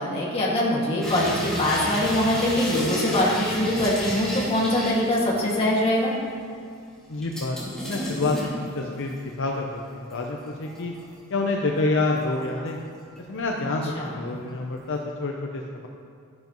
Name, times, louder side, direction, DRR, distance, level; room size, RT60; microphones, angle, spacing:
voice 1, 0.0-6.1 13.9-14.1, left 1 dB, 25° left, -5 dB, 2.0 m, -23 dB
sound 1, 1.0-5.8 6.1-6.2 7.2-9.4 9.8-11.1 11.6-12.8 13.2-13.7 14.0-14.1, left 1 dB, 5° left, 2.5 m, -33 dB
voice 2, 7.1-7.6 7.8-10.9 11.3-12.8 13.3-15.9, left 2 dB, 60° left, 1 dB, 0.7 m, -28 dB
12.5 x 10.5 x 3.1 m, 2.3 s
head